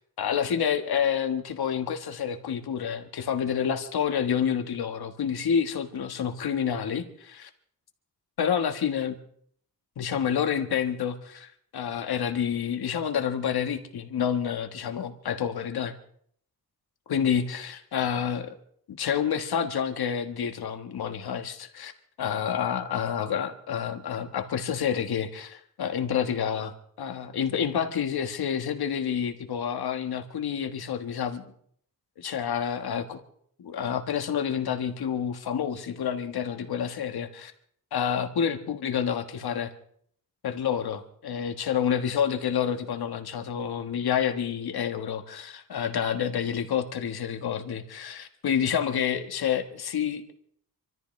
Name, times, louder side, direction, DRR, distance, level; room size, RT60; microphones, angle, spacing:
voice 1, 0.2-7.5 8.4-9.2 10.0-15.9 17.1-18.6 18.9-21.9 22.2-31.5 32.2-33.2 33.6-37.5 37.9-39.7 40.4-50.3, left 8 dB, 80° left, 7 dB, 1.5 m, -28 dB
26.5 x 14.0 x 3.2 m, 0.64 s
wide cardioid pair, 120°, 37 cm